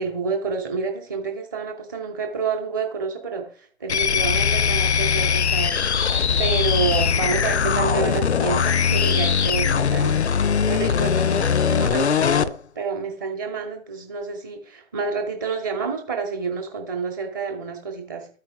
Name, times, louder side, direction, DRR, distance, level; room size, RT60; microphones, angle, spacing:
voice 1, 0.0-18.3, right 5 dB, 15° right, 2 dB, 0.9 m, -29 dB
sound 1, 3.9-12.5, left 7 dB, 55° left, 0.5 m, -21 dB
13.0 x 4.9 x 3.4 m, 0.43 s
figure-of-eight pair, 145°, 41 cm